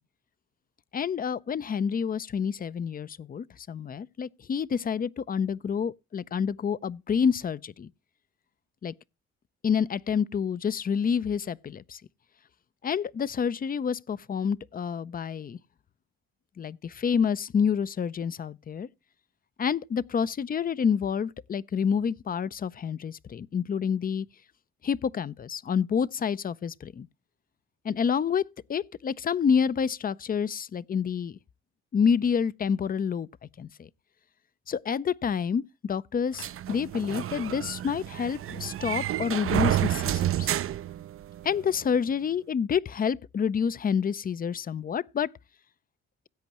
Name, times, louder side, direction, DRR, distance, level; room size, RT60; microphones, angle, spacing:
voice 1, 0.9-7.9 8.8-8.9 9.6-12.0 12.8-15.6 16.6-18.9 19.6-24.3 24.8-27.1 27.8-28.4 28.7-31.4 31.9-33.3 33.6-33.9 34.7-40.5 41.4-45.3, left 7 dB, 30° left, 0.5 m, -28 dB
sound 1, 36.4-41.6, right 12 dB, 45° right, 0.5 m, -30 dB
16.0 x 8.3 x 3.0 m
cardioid pair, 90°, 30 cm